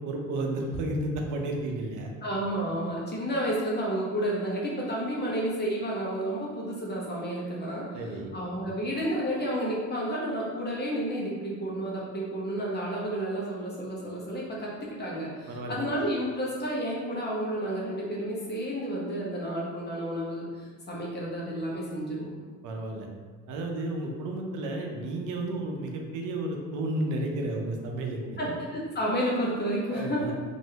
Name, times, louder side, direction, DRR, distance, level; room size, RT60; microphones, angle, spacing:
voice 1, 0.0-2.1 7.9-8.3 15.5-15.9 22.6-23.1 23.5-28.5 29.9-30.3, right 1 dB, 90° right, 2 dB, 0.6 m, -32 dB
voice 2, 2.2-7.9 8.3-20.5 20.9-22.3 28.4-30.3, right 1 dB, 35° left, -4 dB, 1.0 m, -31 dB
3.1 x 2.6 x 2.8 m, 1.5 s
cardioid pair, 90°, 30 cm